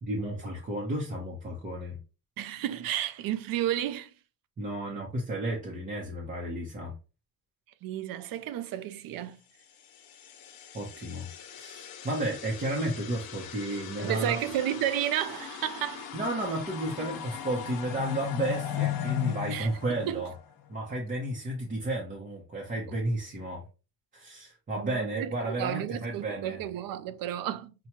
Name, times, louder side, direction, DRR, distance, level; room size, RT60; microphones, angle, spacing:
voice 1, 0.0-2.0 4.6-6.9 10.7-11.3 11.5-14.4 16.1-20.3 20.7-23.6 24.1-26.6, right 1 dB, 20° right, 0.7 m, -32 dB
voice 2, 2.4-4.1 7.8-9.4 14.0-16.1 19.5-20.2 24.8-27.7, right 11 dB, 65° right, 0.5 m, -32 dB
sound 1, 10.0-20.7, left 11 dB, 70° left, 0.9 m, -37 dB
5.8 x 2.2 x 2.9 m
cardioid pair, 160°, 37 cm